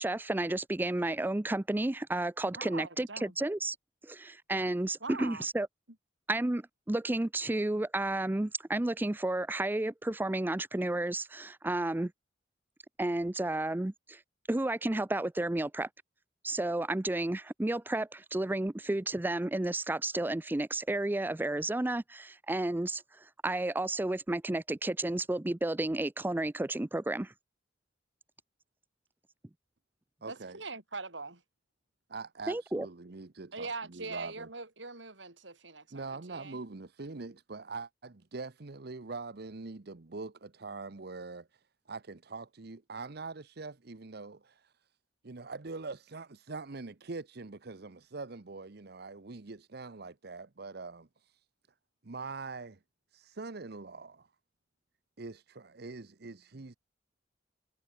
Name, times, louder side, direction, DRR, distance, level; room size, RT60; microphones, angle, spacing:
voice 1, 0.0-3.8 4.0-5.7 6.3-6.6 6.9-12.1 13.0-14.2 14.5-15.9 16.4-27.3 32.5-32.9, right 2 dB, 10° right, 0.4 m, -32 dB
voice 2, 2.5-3.4 5.0-5.5 30.3-31.4 33.5-36.6, right 3 dB, 85° right, 7.2 m, -42 dB
voice 3, 30.2-30.6 32.1-34.5 35.9-44.7 45.2-51.4 52.0-52.8 53.1-54.3 55.2-56.8, right 3 dB, 60° right, 0.9 m, -43 dB
head